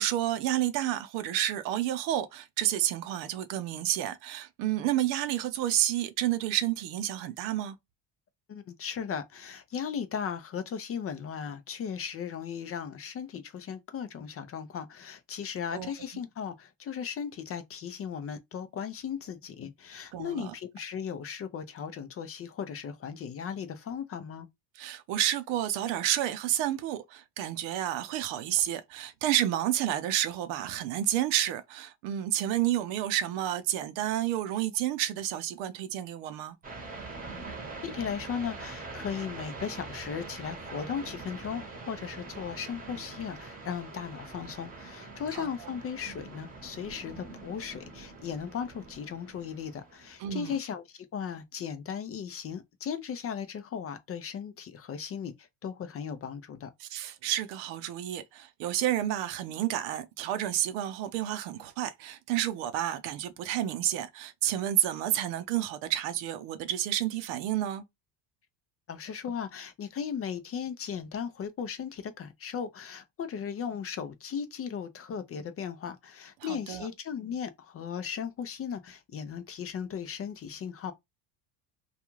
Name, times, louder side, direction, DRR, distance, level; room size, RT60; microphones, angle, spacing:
voice 1, 0.0-7.8 15.7-15.9 20.1-20.5 24.8-36.6 45.3-45.5 50.2-50.6 56.8-67.8 76.4-76.9, right 12 dB, 75° right, 0.7 m, -30 dB
voice 2, 8.5-24.5 37.8-56.7 68.9-80.9, left 7 dB, 30° left, 0.4 m, -37 dB
sound 1, 36.6-50.5, right 3 dB, 20° right, 0.9 m, -44 dB
2.4 x 2.3 x 3.0 m
supercardioid pair, 100°, 46 cm